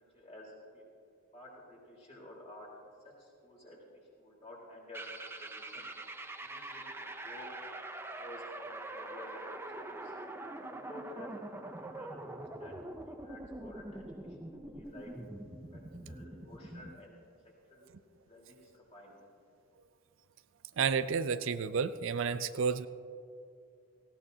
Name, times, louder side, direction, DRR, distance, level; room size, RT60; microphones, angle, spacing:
voice 1, 0.1-0.8 1.3-2.7 3.2-3.8 4.2-5.9 6.4-7.7 8.2-10.1 10.6-12.7 13.0-14.0 14.7-15.1 16.1-17.2 17.7-17.9 18.3-19.1, left 1 dB, 30° left, -4 dB, 3.8 m, -51 dB
sound 1, 4.9-17.0, right 2 dB, 10° right, 0.6 m, -44 dB
voice 2, 20.8-22.9, right 6 dB, 65° right, 12 dB, 0.4 m, -31 dB
18.0 x 17.5 x 2.8 m, 2.5 s
head